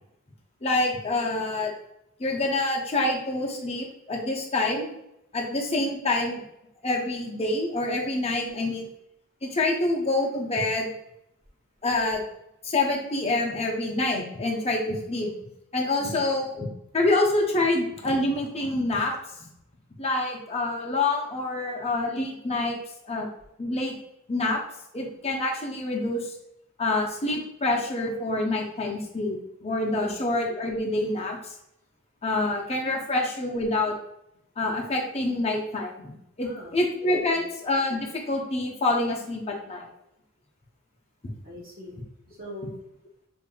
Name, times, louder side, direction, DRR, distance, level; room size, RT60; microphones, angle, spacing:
voice 1, 0.6-1.7 2.2-5.0 5.3-6.4 6.8-8.9 9.4-10.9 11.8-12.2 12.6-15.3 15.7-16.7 16.9-19.2 20.0-22.8 23.0-23.3 23.6-23.9 24.3-24.6 24.9-26.3 26.8-31.5 32.2-33.9 34.6-39.9, left 2 dB, 30° left, 0 dB, 0.7 m, -26 dB
voice 2, 8.4-8.8 16.0-16.3 29.9-30.1 36.4-36.7 37.0-37.5 41.4-42.0 42.3-42.8, equal, 45° right, -8 dB, 0.9 m, -42 dB
5.2 x 2.6 x 2.3 m, 0.80 s
head